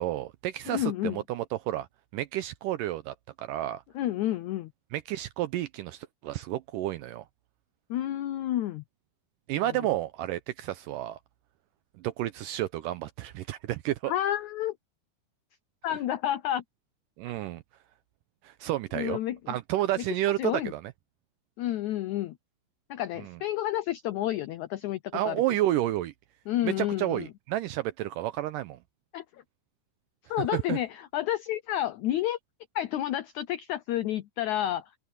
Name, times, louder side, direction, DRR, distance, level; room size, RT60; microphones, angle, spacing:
voice 1, 0.0-1.9 2.1-3.8 4.9-7.3 9.5-11.2 12.0-14.1 17.2-17.6 18.4-19.2 19.5-20.9 23.2-23.4 25.1-26.1 26.6-28.8 30.4-30.8, right 14 dB, 85° right, 2.0 m, -31 dB
voice 2, 0.7-1.2 3.9-4.7 7.9-8.8 14.1-14.8 15.8-16.6 18.9-19.5 20.4-20.7 21.6-22.4 22.9-25.4 26.5-27.3 29.1-29.2 30.3-32.4 32.7-34.9, left 13 dB, 85° left, 1.7 m, -30 dB
open air
omnidirectional pair, 4.3 m